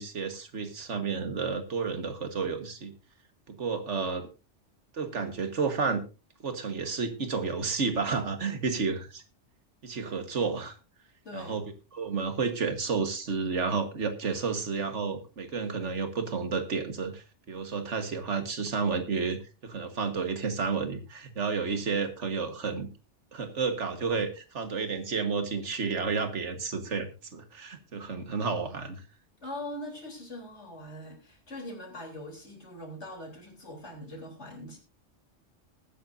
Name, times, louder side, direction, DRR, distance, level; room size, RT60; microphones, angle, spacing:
voice 1, 0.0-2.9 3.5-4.3 4.9-6.0 6.4-9.2 9.8-10.7 11.3-11.6 11.9-22.9 23.3-29.0, right 5 dB, 80° right, 8 dB, 1.8 m, -31 dB
voice 2, 11.2-11.6 29.4-34.8, left 1 dB, 70° left, 1 dB, 4.0 m, -42 dB
20.5 x 9.7 x 2.6 m, 0.31 s
omnidirectional pair, 1.2 m